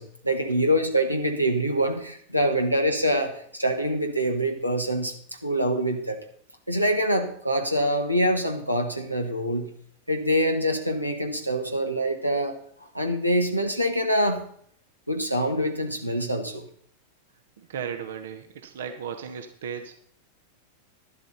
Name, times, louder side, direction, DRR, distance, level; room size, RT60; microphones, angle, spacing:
voice 1, 0.0-5.1 5.4-6.2 6.7-9.7 10.1-12.6 12.9-14.4 15.1-16.6, equal, 90° right, 3 dB, 1.5 m, -25 dB
voice 2, 17.6-19.9, right 7 dB, 60° right, 7 dB, 1.1 m, -35 dB
12.0 x 11.5 x 4.2 m, 0.63 s
figure-of-eight pair, 90°, 0 cm